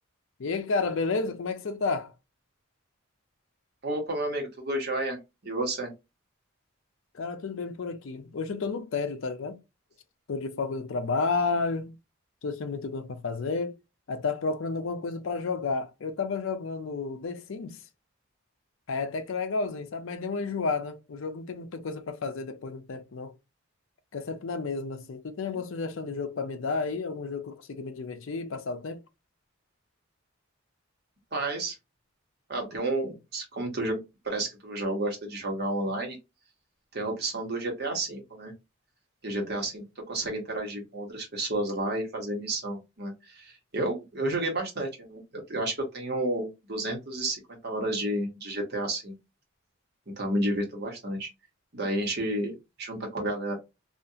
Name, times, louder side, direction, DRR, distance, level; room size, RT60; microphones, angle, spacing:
voice 1, 0.4-2.1 7.1-9.6 10.3-12.0 12.4-13.8 14.1-17.8 18.9-23.3 24.1-29.0, left 4 dB, 65° left, 0.5 m, -31 dB
voice 2, 3.8-5.2 5.4-5.9 25.5-25.6 31.3-31.8 32.5-34.0 34.2-36.2 36.9-38.5 39.2-45.2 45.5-49.1 50.1-51.3 51.7-53.5, right 1 dB, 50° right, 1.1 m, -31 dB
2.7 x 2.4 x 2.4 m
head